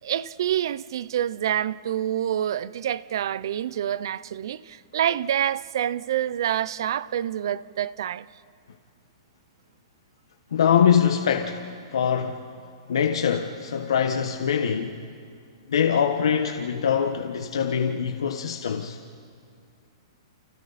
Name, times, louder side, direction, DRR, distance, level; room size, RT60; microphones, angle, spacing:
voice 1, 0.0-8.3, right 10 dB, 55° right, 0.6 m, -27 dB
voice 2, 10.5-12.5 12.9-15.0 15.7-19.0, left 7 dB, 85° left, 1.4 m, -23 dB
30.0 x 28.5 x 4.2 m
hypercardioid pair, 175°, 3 cm